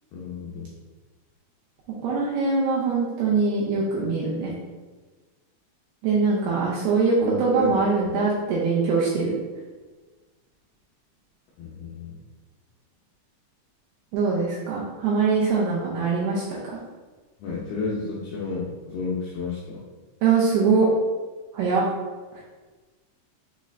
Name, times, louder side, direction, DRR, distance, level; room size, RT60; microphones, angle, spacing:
voice 1, 0.1-0.7 7.2-7.7 11.6-12.1 17.4-19.8, left 3 dB, 85° left, -6 dB, 2.2 m, -31 dB
voice 2, 2.0-4.5 6.0-9.4 14.1-16.4 20.2-20.9 21.5-21.9, right 4 dB, 85° right, -5 dB, 2.4 m, -22 dB
6.8 x 3.1 x 2.4 m, 1.3 s
omnidirectional pair, 5.3 m